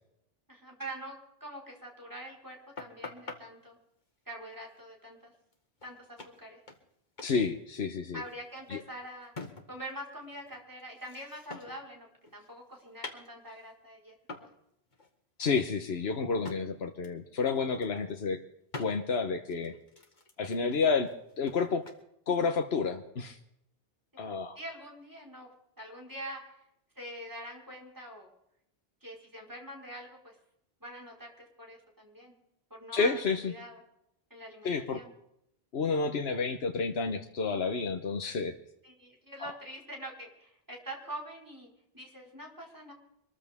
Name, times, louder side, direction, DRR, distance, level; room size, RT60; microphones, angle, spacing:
voice 1, 0.5-3.8 4.3-5.3 5.8-6.6 8.1-9.3 9.7-12.1 12.3-14.5 24.5-25.5 25.8-26.4 27.0-28.3 29.0-30.3 30.8-32.3 32.7-33.8 34.3-35.1 38.8-41.7 41.9-42.9, right 1 dB, 20° right, -1 dB, 4.8 m, -44 dB
sound 1, 2.8-3.4 5.5-5.6 5.8-5.9 6.2-6.9 7.2-7.4 7.7-9.9 10.2-11.9 12.2-13.7 14.3-14.6 14.9-15.1 15.4-16.6 17.0-17.2 17.6-18.1 18.7-18.9 19.5-22.0, left 3 dB, 50° left, 2.0 m, -46 dB
voice 2, 7.2-8.2 8.7-8.8 15.4-18.4 18.8-19.7 20.4-21.1 21.4-21.8 22.3-23.4 24.2-24.6 32.9-33.5 34.6-35.0 35.7-38.5 39.4-39.5, left 4 dB, 80° left, 5 dB, 1.3 m, -30 dB
25.0 x 14.5 x 3.6 m, 0.76 s
omnidirectional pair, 1.0 m